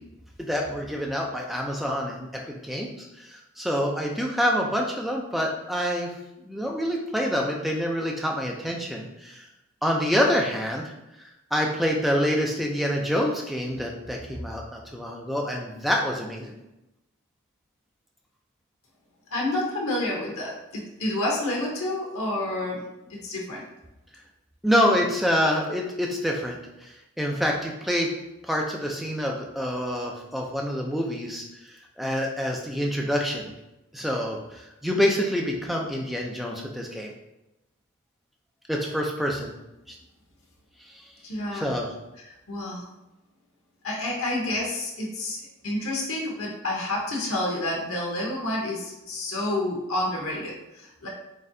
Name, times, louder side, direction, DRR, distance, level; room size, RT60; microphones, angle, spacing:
voice 1, 0.4-6.1 6.4-9.4 9.8-10.8 11.2-16.5 24.6-28.1 28.4-33.5 33.9-37.1 38.7-39.5 40.9-41.0 41.5-41.9, equal, ahead, -1 dB, 0.4 m, -27 dB
voice 2, 19.3-23.6 41.2-41.7 42.2-42.9 43.8-45.4 45.6-51.1, left 1 dB, 85° left, -2 dB, 0.9 m, -29 dB
4.0 x 3.5 x 2.7 m, 0.94 s
head